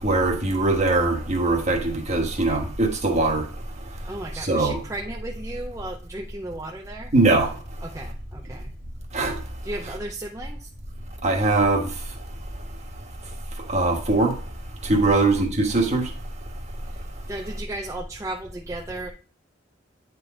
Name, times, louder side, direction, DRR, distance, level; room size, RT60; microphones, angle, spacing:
voice 1, 0.0-3.4 4.3-4.8 7.1-7.5 9.1-9.4 9.8-9.9 11.2-11.9 13.7-14.3 14.8-16.1, right 2 dB, 35° right, 1.3 m, -21 dB
voice 2, 4.0-7.1 7.8-8.7 9.6-10.7 15.1-15.2 17.3-19.1, right 1 dB, 15° right, 0.5 m, -35 dB
9.5 x 4.0 x 3.7 m
head